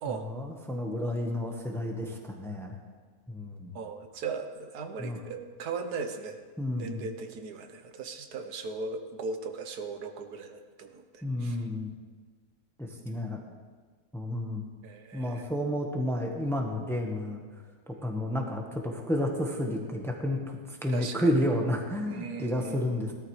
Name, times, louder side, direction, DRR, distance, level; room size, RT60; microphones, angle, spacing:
voice 1, 0.1-2.8 3.3-3.7 5.0-5.2 6.6-7.1 11.2-11.9 12.8-13.4 14.1-14.7 15.1-17.4 17.9-23.1, left 1 dB, ahead, 1 dB, 1.0 m, -31 dB
voice 2, 3.7-6.4 6.7-11.6 14.8-15.5 20.9-21.3 22.1-23.1, right 4 dB, 85° right, 6 dB, 1.4 m, -38 dB
17.0 x 12.5 x 3.2 m, 1.5 s
omnidirectional pair, 1.6 m